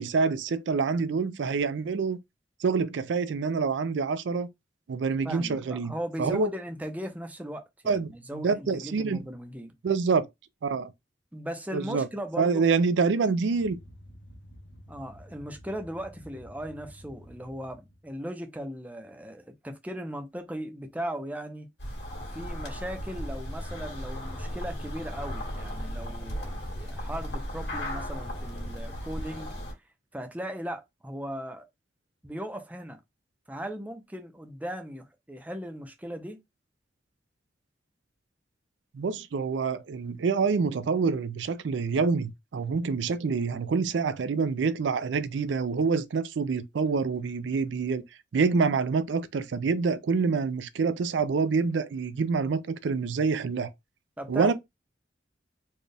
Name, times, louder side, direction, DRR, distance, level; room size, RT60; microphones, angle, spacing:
voice 1, 0.0-2.2 2.6-4.5 4.9-5.9 6.2-6.5 7.9-9.2 9.8-10.3 10.6-10.9 11.7-12.1 12.4-13.8 38.9-48.0 48.3-53.7 54.3-54.5, right 5 dB, 85° right, 0.4 m, -26 dB
voice 2, 5.2-9.8 11.3-12.7 14.9-21.7 22.3-29.5 30.1-31.7 32.2-33.0 33.5-36.4 54.2-54.5, equal, 10° right, 0.6 m, -38 dB
sound 1, 13.5-18.1, equal, 85° left, 0.9 m, -50 dB
sound 2, 21.8-29.7, equal, 65° left, 2.0 m, -36 dB
4.3 x 2.3 x 3.3 m
head